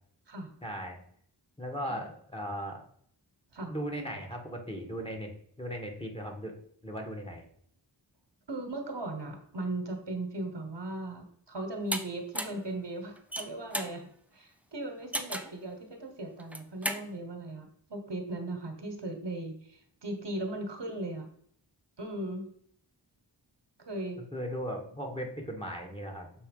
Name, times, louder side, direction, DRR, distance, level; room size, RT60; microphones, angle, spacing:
voice 1, 0.6-1.0 1.6-2.8 3.7-5.3 5.6-6.5 6.8-7.4 24.3-26.3, equal, 10° left, 2 dB, 1.8 m, -37 dB
voice 2, 8.5-14.1 14.3-21.3 22.0-22.5 23.8-24.2, right 1 dB, 65° right, 5 dB, 1.5 m, -38 dB
sound 1, 11.9-12.0 12.4-12.6 13.2-14.0 15.1-15.6 16.4-17.0, right 1 dB, 5° right, 0.7 m, -34 dB
7.0 x 4.2 x 5.5 m, 0.62 s
wide cardioid pair, 65°, 45 cm